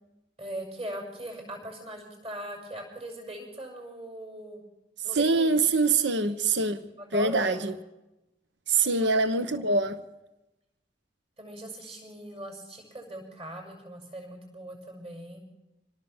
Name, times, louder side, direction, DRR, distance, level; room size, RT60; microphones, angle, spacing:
voice 1, 0.4-4.6 5.0-5.6 6.2-6.4 7.0-7.7 8.8-9.3 9.5-9.6 11.4-15.4, right 1 dB, 35° right, 6.9 m, -40 dB
voice 2, 5.1-7.8 8.7-10.0, right 3 dB, 70° right, 1.1 m, -24 dB
26.0 x 19.0 x 7.4 m
head